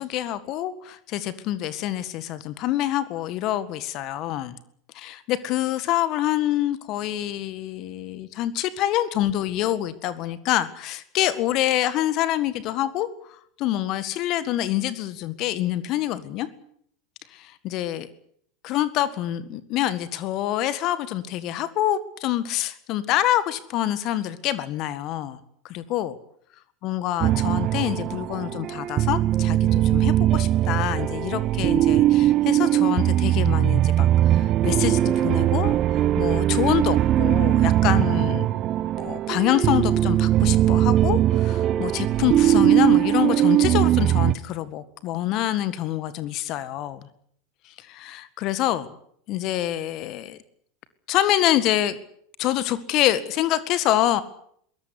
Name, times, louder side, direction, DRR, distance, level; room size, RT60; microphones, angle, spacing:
voice 1, 0.0-4.6 4.9-13.1 13.6-16.5 17.3-18.1 18.6-25.4 25.6-26.2 26.8-38.5 39.0-47.1 47.9-48.9 49.3-50.4 51.1-52.0 52.4-54.2, left 13 dB, 50° left, 15 dB, 1.8 m, -26 dB
sound 1, 27.2-44.3, right 13 dB, 40° right, 0.9 m, -20 dB
22.0 x 18.0 x 9.6 m, 0.66 s
hypercardioid pair, 85°, 0 cm